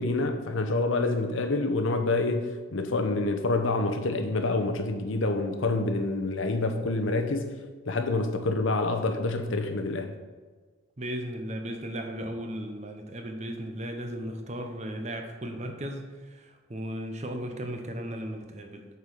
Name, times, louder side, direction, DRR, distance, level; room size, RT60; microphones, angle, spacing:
voice 1, 0.0-7.5 7.9-10.1, left 2 dB, 65° left, 0.8 m, -27 dB
voice 2, 11.0-18.9, equal, 35° right, 0.7 m, -36 dB
8.2 x 4.6 x 5.2 m
head